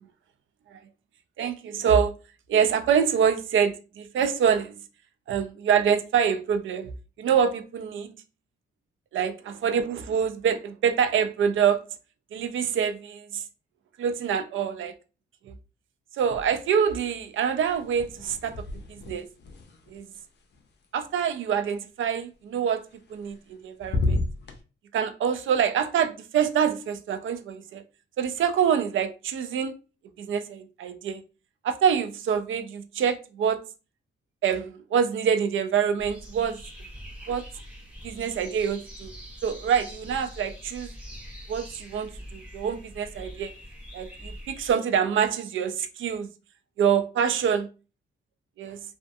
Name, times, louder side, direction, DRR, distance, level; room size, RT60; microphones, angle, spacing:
voice 1, 1.4-2.2 2.5-4.7 5.3-6.9 7.2-8.1 9.1-11.9 12.3-13.4 14.0-14.9 15.5-15.6 16.1-19.3 19.9-20.1 20.9-22.8 23.1-24.2 24.9-27.8 28.2-29.7 30.2-31.2 31.6-33.7 34.4-36.6 37.3-37.4 38.0-39.1 39.4-40.9 41.5-43.5 43.9-46.3 46.8-47.7 48.6-48.8, right 7 dB, 70° right, 0.4 m, -26 dB
sound 1, 16.2-16.9 17.2-21.3 22.9-23.5 23.8-24.6, left 2 dB, 55° left, 0.5 m, -33 dB
sound 2, 36.0-44.7, equal, 5° right, 1.3 m, -43 dB
2.5 x 2.4 x 2.3 m
cardioid pair, 95°, 21 cm